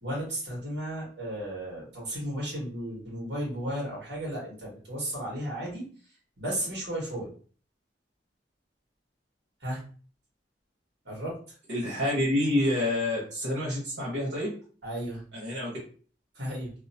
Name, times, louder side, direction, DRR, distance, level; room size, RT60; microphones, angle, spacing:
voice 1, 0.0-5.8 6.4-7.3 9.6-9.8 11.0-11.3 14.8-15.2 16.3-16.7, right 1 dB, 70° right, -4 dB, 1.5 m, -34 dB
voice 2, 11.7-14.5 15.3-15.7, left 1 dB, 85° right, -6 dB, 1.2 m, -28 dB
2.9 x 2.0 x 2.7 m, 0.41 s
head